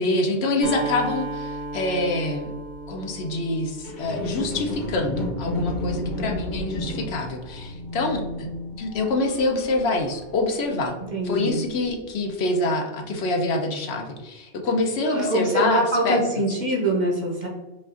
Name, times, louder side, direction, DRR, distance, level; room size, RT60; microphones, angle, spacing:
voice 1, 0.0-2.5 2.9-8.5 8.8-10.9 11.2-16.2, left 2 dB, 70° left, 3 dB, 0.8 m, -26 dB
Acoustic guitar, 0.6-4.5, right 2 dB, 85° right, 1.7 m, -34 dB
sound 1, 3.8-11.3 11.8-11.9, left 1 dB, 45° left, 1.0 m, -32 dB
voice 2, 11.1-11.7 15.0-17.5, right 1 dB, 45° right, -1 dB, 0.8 m, -24 dB
5.4 x 2.4 x 2.5 m, 1.1 s
omnidirectional pair, 1.2 m